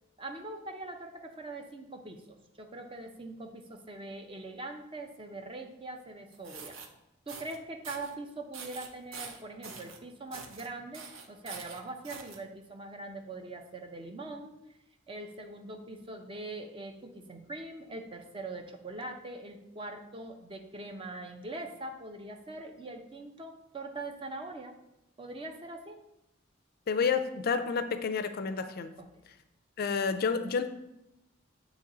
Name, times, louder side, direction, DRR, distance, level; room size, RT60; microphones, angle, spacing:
voice 1, 0.2-2.2 2.6-6.8 7.3-14.5 15.1-24.7 25.2-26.0 29.0-29.1, right 2 dB, 25° right, 4 dB, 0.6 m, -42 dB
sound 1, 6.3-6.9 7.3-7.6 7.8-8.1 8.5-10.0 10.3-10.7 10.9-12.4, right 5 dB, 80° right, 0.7 m, -45 dB
voice 2, 26.9-28.9 29.8-30.7, left 5 dB, 50° left, 9 dB, 0.4 m, -29 dB
8.4 x 3.0 x 3.8 m, 0.88 s
head